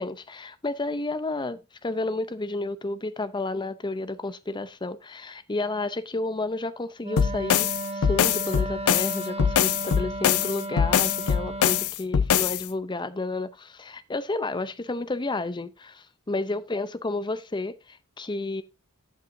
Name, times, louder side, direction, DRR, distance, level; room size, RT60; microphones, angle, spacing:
voice 1, 0.0-18.6, left 2 dB, 20° left, 0.6 m, -31 dB
Wind instrument woodwind instrument, 7.0-11.9, right 2 dB, 25° right, 1.3 m, -34 dB
sound 1, 7.2-12.6, left 8 dB, 75° left, 0.5 m, -23 dB
16.5 x 5.5 x 2.7 m
head